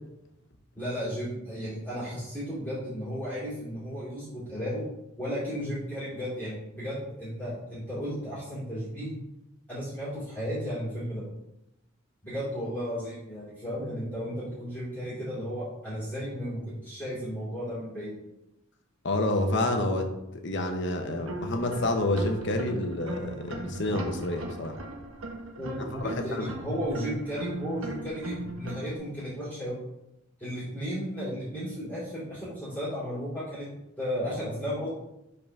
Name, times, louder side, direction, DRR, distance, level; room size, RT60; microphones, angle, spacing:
voice 1, 0.7-4.8 5.2-9.2 9.7-11.2 12.2-18.1 25.6-29.8 30.4-33.7 34.0-34.9, equal, 10° left, -10 dB, 2.6 m, -34 dB
voice 2, 19.0-20.1 20.4-24.7 26.0-26.5, left 2 dB, 60° left, 4 dB, 1.0 m, -28 dB
sound 1, 21.1-29.0, right 2 dB, 90° right, 1.2 m, -38 dB
5.4 x 4.1 x 6.0 m, 0.89 s
head